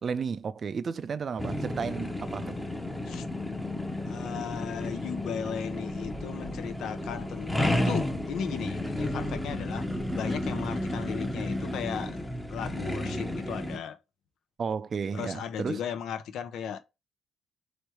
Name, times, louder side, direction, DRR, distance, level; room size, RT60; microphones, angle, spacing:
voice 1, 0.0-2.5 14.6-15.8, right 6 dB, 45° right, 0.4 m, -33 dB
sound 1, 1.4-13.8, left 1 dB, 5° left, 0.7 m, -32 dB
voice 2, 4.1-9.9 10.1-12.2 12.5-14.0 15.1-16.8, left 8 dB, 75° left, 0.6 m, -36 dB
3.2 x 3.1 x 4.7 m
cardioid pair, 90°, 0 cm